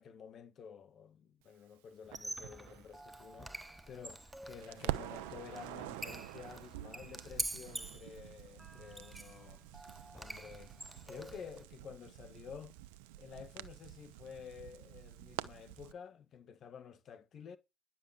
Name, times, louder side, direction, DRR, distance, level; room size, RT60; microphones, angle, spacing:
voice 1, 0.0-9.6 10.1-12.8 13.2-17.6, left 7 dB, 50° left, 1.9 m, -51 dB
Squeak, 2.0-11.6, right 1 dB, 10° right, 1.2 m, -46 dB
Crackle, 2.1-4.3 4.6-15.9, right 15 dB, 80° right, 1.0 m, -47 dB
11.0 x 7.7 x 6.5 m
hypercardioid pair, 65°, 0 cm